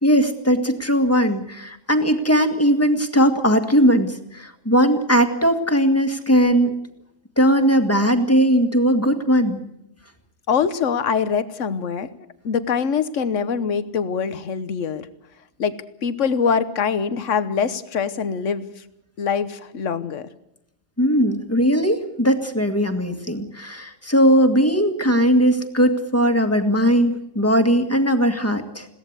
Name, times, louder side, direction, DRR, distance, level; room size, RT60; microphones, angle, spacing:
voice 1, 0.0-6.7 7.4-9.6 21.0-28.9, equal, 10° left, 7 dB, 1.8 m, -19 dB
voice 2, 10.5-12.1 12.4-15.1 15.6-18.7 19.2-20.3, left 6 dB, 70° left, 13 dB, 1.4 m, -23 dB
22.0 x 17.0 x 8.2 m, 0.82 s
omnidirectional pair, 1.3 m